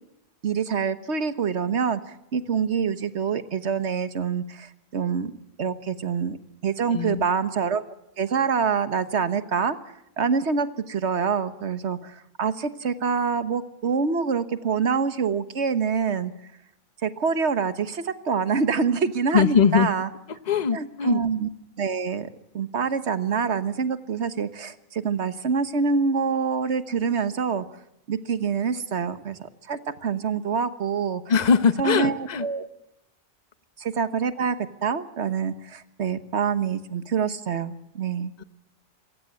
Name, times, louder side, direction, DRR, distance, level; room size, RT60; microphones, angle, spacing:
voice 1, 0.4-2.0 2.3-5.3 5.6-6.4 6.6-7.8 8.2-9.8 10.2-12.1 12.4-16.3 17.0-20.1 20.7-21.5 21.8-22.3 22.5-27.6 28.1-31.2 31.8-32.7 33.8-34.6 34.8-38.3, right 6 dB, 70° right, 12 dB, 1.5 m, -26 dB
voice 2, 6.9-7.3 19.3-19.9 20.5-21.2 31.3-32.5 38.4-38.5, left 6 dB, 40° left, 13 dB, 1.0 m, -21 dB
26.5 x 15.5 x 9.5 m, 0.84 s
omnidirectional pair, 1.2 m